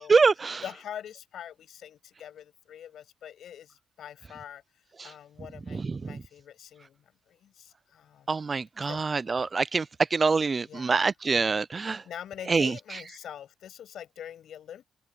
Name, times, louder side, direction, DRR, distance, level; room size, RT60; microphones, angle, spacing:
voice 1, 0.0-0.6 5.0-5.1 5.7-6.0 8.3-9.9 10.1-12.0 12.5-12.7, right 4 dB, 30° right, 0.4 m, -25 dB
voice 2, 0.6-4.6 5.0-8.4 8.8-9.1 10.6-11.0 11.3-11.6 12.0-14.8, left 10 dB, 70° left, 6.8 m, -44 dB
cardioid pair, 100°, 0 cm